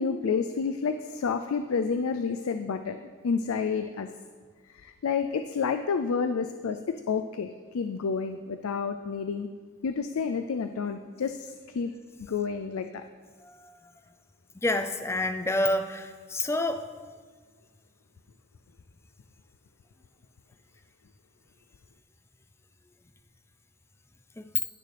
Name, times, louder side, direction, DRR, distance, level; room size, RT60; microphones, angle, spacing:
voice 1, 0.0-3.0 3.2-4.1 4.7-9.5 9.8-11.9 12.2-13.0, left 5 dB, 90° left, 8 dB, 0.4 m, -30 dB
voice 2, 14.6-16.8 24.4-24.5, left 1 dB, 10° left, 8 dB, 0.4 m, -28 dB
16.0 x 6.6 x 3.4 m, 1.5 s
head